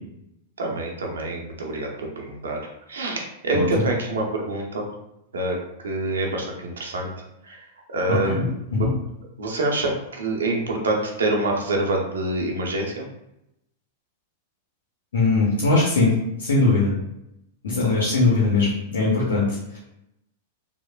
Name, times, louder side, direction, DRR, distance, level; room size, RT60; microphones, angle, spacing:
voice 1, 0.6-2.6 2.9-4.9 5.3-5.6 5.8-7.1 7.4-7.6 7.9-8.9 9.4-13.0, right 2 dB, 80° right, 0 dB, 0.6 m, -26 dB
voice 2, 3.5-3.9 8.1-8.4 8.7-8.9 15.1-16.1 16.4-16.9 17.6-19.8, left 3 dB, 80° left, -5 dB, 0.7 m, -21 dB
3.2 x 2.0 x 2.3 m, 0.83 s
hypercardioid pair, 100°, 0 cm